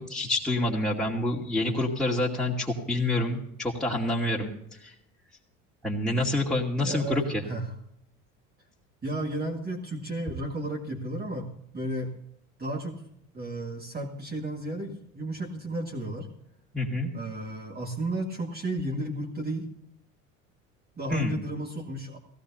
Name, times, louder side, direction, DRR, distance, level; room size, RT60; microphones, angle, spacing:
voice 1, 0.0-4.5 4.8-4.9 5.8-7.4 16.7-17.1 21.1-21.4, left 1 dB, ahead, -4 dB, 2.4 m, -27 dB
voice 2, 6.8-7.6 9.0-12.1 12.6-13.0 13.3-16.3 17.1-19.7 21.0-22.2, right 1 dB, 25° right, 2 dB, 2.0 m, -33 dB
18.0 x 16.5 x 2.8 m, 0.73 s
hypercardioid pair, 75°, 41 cm